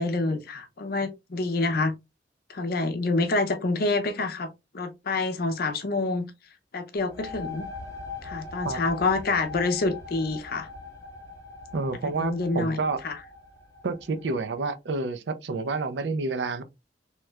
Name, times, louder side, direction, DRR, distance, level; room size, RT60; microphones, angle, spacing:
voice 1, 0.0-1.9 2.5-4.5 4.7-6.3 6.7-7.7 8.2-10.7 12.0-13.2, left 3 dB, 60° left, 0.6 m, -27 dB
sound 1, 7.0-14.4, left 4 dB, 20° left, 1.1 m, -41 dB
voice 2, 11.7-13.0 13.8-16.6, right 3 dB, 75° right, 0.5 m, -29 dB
3.1 x 3.0 x 2.3 m
head